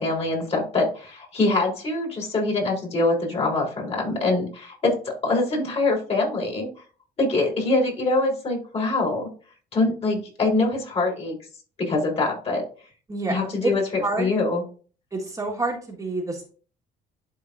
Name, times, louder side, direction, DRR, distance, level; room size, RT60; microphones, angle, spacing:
voice 1, 0.0-6.7 7.2-9.3 9.7-11.4 11.8-12.6 13.3-14.6, left 2 dB, 35° left, -2 dB, 3.9 m, -24 dB
voice 2, 13.1-13.7 14.0-14.3 15.1-16.5, right 2 dB, 20° right, -1 dB, 1.6 m, -28 dB
12.0 x 4.1 x 2.6 m, 0.39 s
cardioid pair, 110°, 17 cm